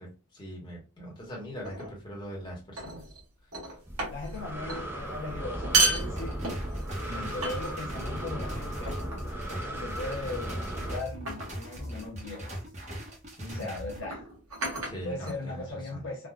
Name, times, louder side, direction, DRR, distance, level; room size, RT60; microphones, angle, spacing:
voice 1, 0.0-3.1 7.0-7.3 13.4-13.8 14.8-15.6 15.9-16.0, equal, 20° left, 1.1 m, -41 dB
sound 1, 1.6-2.0 2.8-3.2 3.5-4.4 4.7-4.9 5.5-6.9 7.4-8.0 8.9-9.3 10.3-10.6 11.3-11.7 12.8-13.0 14.0-15.7, right 3 dB, 85° right, 1.1 m, -31 dB
Breathing, 3.9-11.0, right 1 dB, 10° right, 0.4 m, -36 dB
voice 2, 4.1-6.6 7.1-8.9 9.5-12.6 13.5-14.3 15.0-16.3, left 2 dB, 60° left, 0.6 m, -38 dB
sound 2, 6.0-14.0, equal, 30° right, 0.8 m, -40 dB
3.5 x 2.2 x 2.3 m
head